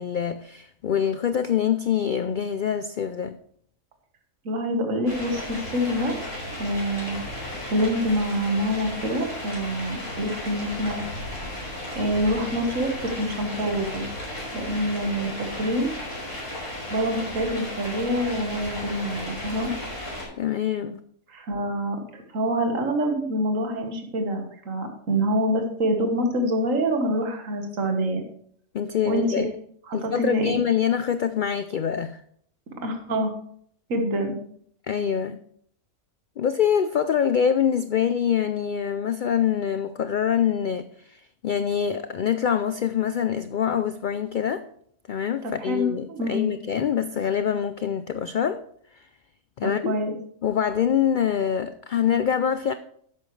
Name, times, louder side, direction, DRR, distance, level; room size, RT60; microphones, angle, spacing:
voice 1, 0.0-3.4 20.4-21.0 28.7-29.4 29.9-32.2 34.9-35.4 36.4-44.6 45.1-48.6 48.9-49.1 49.6-49.9 50.4-52.7, left 8 dB, 85° left, 11 dB, 0.4 m, -25 dB
voice 2, 4.5-6.2 6.6-7.2 7.6-11.0 12.0-14.1 14.5-15.9 16.9-19.7 21.3-28.2 29.1-29.5 29.9-30.6 32.8-33.3 33.9-34.4 45.4-46.6 49.6-50.1, equal, 70° right, 4 dB, 1.8 m, -26 dB
sound 1, 5.1-20.2, left 1 dB, 40° left, 5.1 m, -35 dB
12.0 x 8.7 x 3.2 m, 0.64 s
omnidirectional pair, 1.4 m